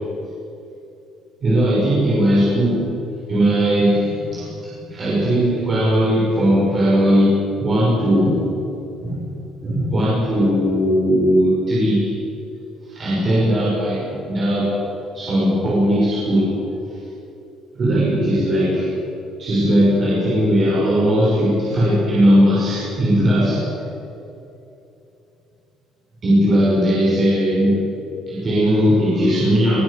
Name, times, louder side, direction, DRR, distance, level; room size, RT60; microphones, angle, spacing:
voice 1, 1.4-2.8 3.3-8.4 9.0-9.3 9.6-12.1 12.9-14.8 15.1-16.5 17.7-18.9 19.4-23.7 26.2-27.8 28.3-29.8, equal, 25° right, -6 dB, 5.9 m, -18 dB
22.0 x 20.0 x 8.5 m, 2.8 s
cardioid pair, 180°, 0 cm